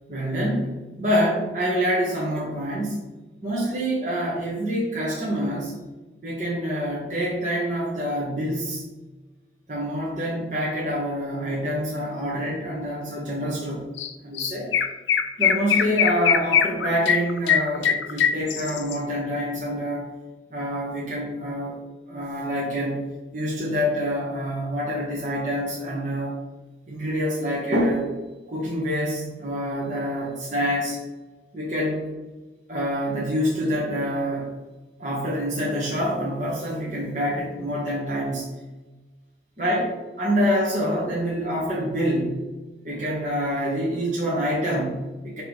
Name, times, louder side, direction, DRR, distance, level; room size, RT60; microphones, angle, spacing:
voice 1, 0.1-3.0 3.4-5.7 6.2-8.8 9.7-13.9 14.2-14.7 15.4-20.1 20.5-21.8 22.1-23.0 23.3-26.3 26.9-28.1 28.5-31.0 31.5-32.0 32.7-34.6 35.0-38.5 39.6-39.9 40.2-42.4 42.8-45.4, equal, 40° right, -7 dB, 1.5 m, -26 dB
Chirp tweet, 14.0-14.1 14.4-19.0, left 8 dB, 85° left, 0.5 m, -22 dB
6.3 x 3.2 x 5.1 m, 1.2 s
head